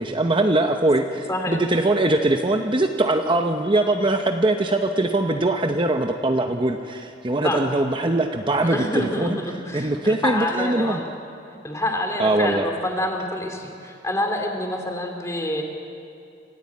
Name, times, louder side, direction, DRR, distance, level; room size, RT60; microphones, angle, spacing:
voice 1, 0.0-9.4 9.7-11.0 12.2-12.6, right 2 dB, 30° right, 5 dB, 0.8 m, -22 dB
voice 2, 1.3-1.6 7.4-7.6 8.7-11.0 11.6-15.6, left 1 dB, 15° left, 3 dB, 2.6 m, -27 dB
26.0 x 15.5 x 8.6 m, 2.5 s
head